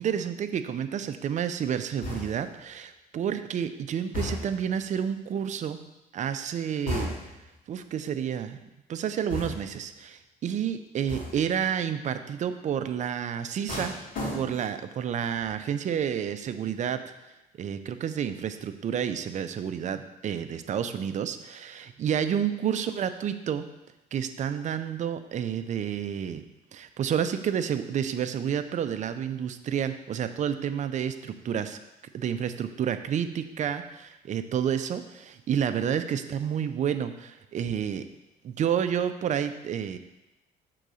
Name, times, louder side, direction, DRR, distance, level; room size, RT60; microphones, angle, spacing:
voice 1, 0.0-5.8 6.1-7.4 7.7-8.6 8.9-13.9 14.3-17.0 17.6-23.6 24.1-26.4 26.7-31.8 32.1-38.0 38.4-40.0, right 8 dB, 45° right, 10 dB, 0.5 m, -30 dB
sound 1, 2.0-2.6 4.1-4.7 6.9-7.5 9.3-9.9 11.1-11.5 13.7-14.8 15.2-15.6, left 1 dB, 55° left, 2.6 m, -34 dB
6.7 x 3.9 x 6.3 m, 0.96 s
cardioid pair, 110°, 17 cm